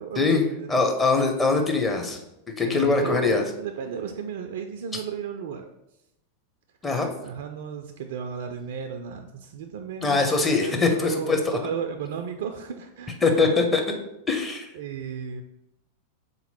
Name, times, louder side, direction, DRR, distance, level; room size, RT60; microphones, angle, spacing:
voice 1, 0.0-0.8 2.6-5.7 7.2-10.3 10.6-14.0 14.7-15.4, right 7 dB, 55° right, 6 dB, 0.3 m, -34 dB
voice 2, 0.7-2.2 2.6-3.4 6.8-7.1 10.0-11.6 13.2-13.8 14.3-14.7, left 3 dB, 15° left, 2 dB, 0.7 m, -22 dB
3.8 x 2.9 x 4.2 m, 0.85 s
figure-of-eight pair, 90°, 0 cm